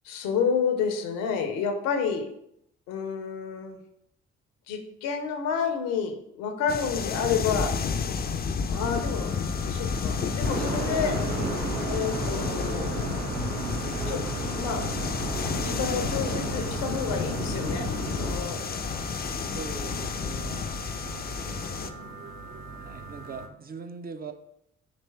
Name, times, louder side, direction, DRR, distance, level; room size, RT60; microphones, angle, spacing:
voice 1, 0.0-2.3 2.9-3.8 4.7-7.8 8.7-11.2 11.8-13.0 14.0-14.9 15.6-18.6 21.5-22.1, left 6 dB, 75° left, 6 dB, 0.7 m, -30 dB
sound 1, 6.7-21.9, left 6 dB, 30° left, 0.4 m, -31 dB
sound 2, 8.7-23.5, right 4 dB, 55° right, 0.7 m, -42 dB
sound 3, 10.4-18.4, right 2 dB, 90° right, 0.7 m, -33 dB
voice 2, 19.5-20.6 22.8-24.3, right 5 dB, 25° right, 7 dB, 0.5 m, -40 dB
4.2 x 2.9 x 3.4 m, 0.77 s
hypercardioid pair, 45°, 34 cm